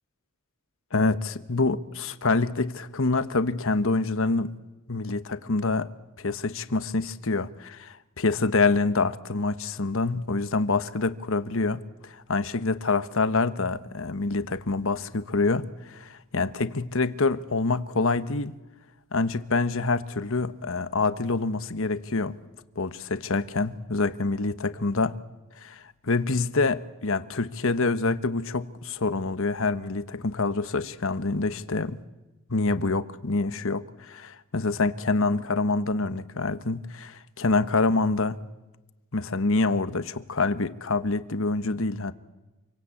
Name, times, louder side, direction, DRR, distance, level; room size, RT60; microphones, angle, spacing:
voice 1, 0.9-4.5 4.9-5.9 6.2-18.5 19.1-22.4 22.8-25.2 25.6-32.0 32.5-38.4 39.1-42.1, left 3 dB, 65° left, 1.2 m, -26 dB
27.5 x 24.0 x 8.5 m
head